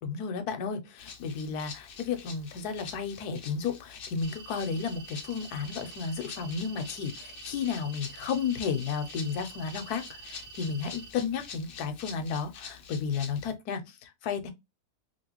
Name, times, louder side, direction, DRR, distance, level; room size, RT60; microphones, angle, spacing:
voice 1, 0.0-14.5, left 6 dB, 80° left, 1.2 m, -33 dB
Rattle (instrument), 1.0-13.5, left 6 dB, 55° left, 0.6 m, -46 dB
sound 1, 4.2-11.1, right 5 dB, 80° right, 1.3 m, -47 dB
3.1 x 2.8 x 2.9 m
omnidirectional pair, 1.6 m